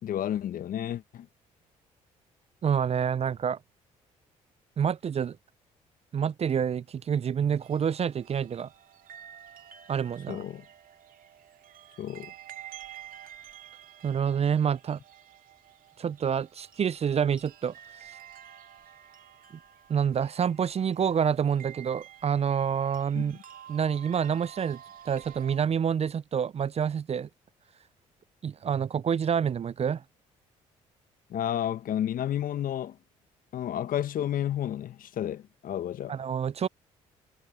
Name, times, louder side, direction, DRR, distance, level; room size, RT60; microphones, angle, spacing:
voice 1, 0.0-1.3 10.3-10.6 12.0-12.3 23.1-23.4 31.3-33.0 33.5-36.2, left 11 dB, 55° left, 1.5 m, -31 dB
voice 2, 2.6-3.6 4.8-5.4 6.1-8.7 9.9-10.4 14.0-15.0 16.0-17.7 19.9-23.4 23.7-24.8 25.1-27.3 28.4-30.0 36.1-36.7, right 7 dB, 40° right, 0.6 m, -27 dB
sound 1, 7.6-25.6, right 10 dB, 55° right, 2.9 m, -50 dB
hypercardioid pair, 50°, 17 cm